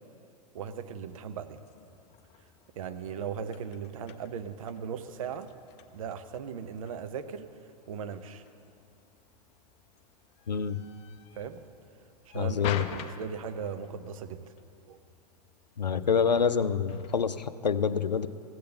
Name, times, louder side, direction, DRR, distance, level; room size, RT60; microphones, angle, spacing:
voice 1, 0.5-1.6 2.8-5.5 5.9-7.5 7.9-8.4 11.4-11.6 12.3-14.5 14.9-15.0, right 7 dB, 55° right, 10 dB, 0.8 m, -38 dB
sound 1, 1.6-17.5, left 9 dB, 30° left, 0.7 m, -48 dB
voice 2, 10.5-10.8 12.3-12.9 15.8-18.3, left 6 dB, 80° left, 13 dB, 0.5 m, -27 dB
15.5 x 8.6 x 6.7 m, 2.5 s
figure-of-eight pair, 100°, 21 cm